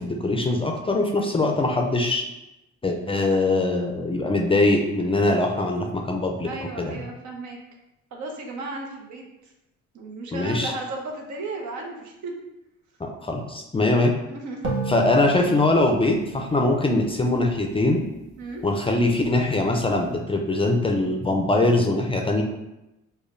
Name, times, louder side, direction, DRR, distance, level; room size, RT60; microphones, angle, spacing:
voice 1, 0.0-2.2 2.8-6.5 6.8-7.0 10.3-10.7 13.0-14.2 14.9-18.0 18.6-22.4, left 2 dB, 20° left, 2 dB, 0.4 m, -22 dB
voice 2, 6.4-7.6 8.1-9.2 9.9-12.3 14.3-14.7 18.4-18.6, right 2 dB, 70° right, 1 dB, 0.8 m, -34 dB
sound 1, 14.6-18.1, right 4 dB, 40° right, 1.1 m, -33 dB
4.9 x 2.2 x 2.5 m, 0.94 s
cardioid pair, 90°, 30 cm